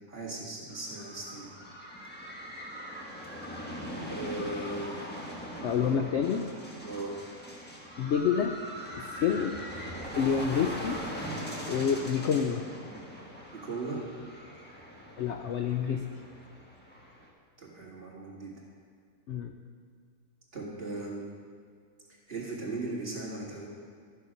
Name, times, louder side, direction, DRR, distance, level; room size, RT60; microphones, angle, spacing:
voice 1, 0.1-1.5 4.1-4.9 6.8-7.1 13.6-14.0 17.6-18.5 20.5-21.2 22.3-23.7, right 2 dB, 35° right, -4 dB, 2.1 m, -37 dB
sound 1, 0.7-17.3, equal, 5° left, 1.1 m, -41 dB
voice 2, 5.6-6.5 8.0-8.6 9.0-9.6 10.1-11.0 11.7-12.7 15.2-16.1 19.3-19.6, left 7 dB, 85° left, 5 dB, 0.6 m, -28 dB
12.5 x 6.8 x 5.2 m, 2.1 s
omnidirectional pair, 1.7 m